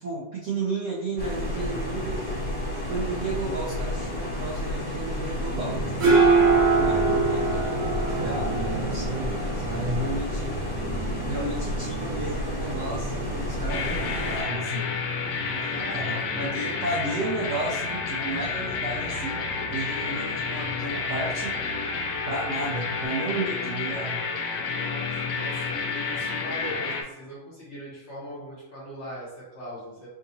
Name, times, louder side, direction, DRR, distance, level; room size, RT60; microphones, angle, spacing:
voice 1, 0.0-2.3 2.9-6.4 6.7-10.6 11.3-14.9 15.5-21.7 22.3-24.2, right 2 dB, 90° right, -4 dB, 0.6 m, -33 dB
sound 1, 1.2-14.4, left 1 dB, 20° left, 0.7 m, -31 dB
sound 2, 5.6-23.0, right 4 dB, 50° right, 1.0 m, -28 dB
sound 3, 13.7-27.0, left 5 dB, 70° left, 1.1 m, -30 dB
voice 2, 15.7-16.7 24.6-30.1, equal, 55° left, -5 dB, 0.8 m, -40 dB
4.8 x 2.9 x 2.7 m, 0.95 s
omnidirectional pair, 2.1 m